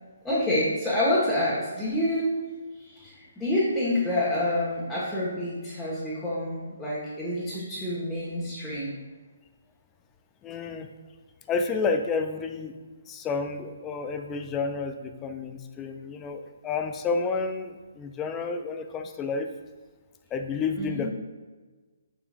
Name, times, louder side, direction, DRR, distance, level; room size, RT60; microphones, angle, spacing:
voice 1, 0.2-2.4 2.7-9.0 20.8-21.1, left 1 dB, ahead, -12 dB, 1.6 m, -28 dB
voice 2, 10.4-10.9 11.5-12.7 13.1-19.5 20.3-21.1, left 4 dB, 15° left, 6 dB, 0.5 m, -30 dB
6.9 x 6.8 x 2.6 m, 1.3 s
figure-of-eight pair, 135°, 0 cm